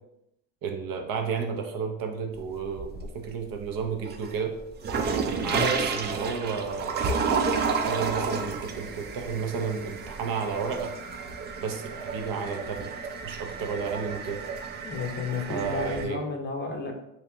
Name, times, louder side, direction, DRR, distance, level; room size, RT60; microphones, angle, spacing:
voice 1, 0.6-4.5 5.4-7.1 7.8-10.9 11.6-12.9 13.2-14.4 15.5-16.2, right 5 dB, 55° right, 3 dB, 0.7 m, -32 dB
sound 1, 2.3-3.3 3.7-16.0, right 5 dB, 25° right, 0.3 m, -31 dB
voice 2, 14.8-16.9, left 4 dB, 25° left, 2 dB, 0.6 m, -32 dB
3.1 x 2.8 x 3.4 m, 0.79 s
supercardioid pair, 95°, 42 cm